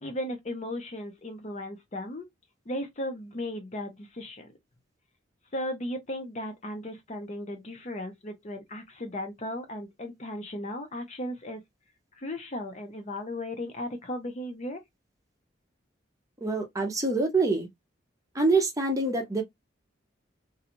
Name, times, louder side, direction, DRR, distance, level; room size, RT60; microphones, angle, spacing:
voice 1, 0.0-2.3 2.7-4.5 5.5-11.6 12.2-14.8, left 1 dB, 35° left, 0.6 m, -36 dB
voice 2, 16.4-17.7 18.3-19.4, right 3 dB, 20° right, 0.6 m, -25 dB
2.5 x 2.3 x 2.8 m
head